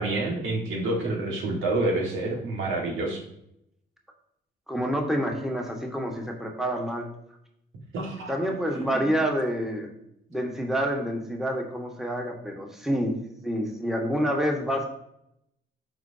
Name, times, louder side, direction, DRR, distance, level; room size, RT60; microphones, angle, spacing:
voice 1, 0.0-3.2 7.9-8.3 8.7-9.1, right 2 dB, 85° right, -1 dB, 2.0 m, -28 dB
voice 2, 4.7-7.1 8.3-9.9 10.3-13.2 13.4-14.9, equal, ahead, 1 dB, 1.6 m, -28 dB
12.5 x 4.5 x 2.9 m, 0.78 s
cardioid pair, 90°, 20 cm